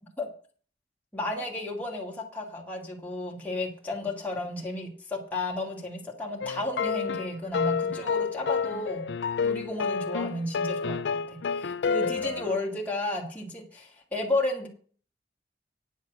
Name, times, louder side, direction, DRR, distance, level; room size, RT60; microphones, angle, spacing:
voice 1, 1.1-9.1 9.4-14.7, left 2 dB, 10° left, -3 dB, 2.1 m, -33 dB
sound 1, 6.4-12.6, left 6 dB, 85° left, 0.4 m, -29 dB
9.5 x 7.2 x 6.5 m, 0.43 s
head